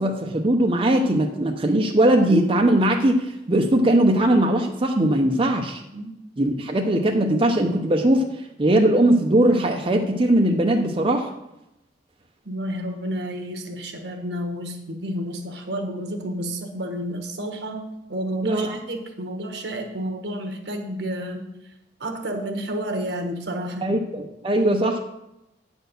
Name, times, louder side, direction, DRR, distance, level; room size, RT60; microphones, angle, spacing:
voice 1, 0.0-5.8 6.4-8.3 8.6-11.3 18.4-18.8 23.8-25.0, right 1 dB, 30° right, 2 dB, 0.6 m, -20 dB
voice 2, 12.4-21.5 22.0-24.0, equal, 70° right, 4 dB, 1.2 m, -30 dB
9.0 x 4.4 x 6.7 m, 0.90 s
head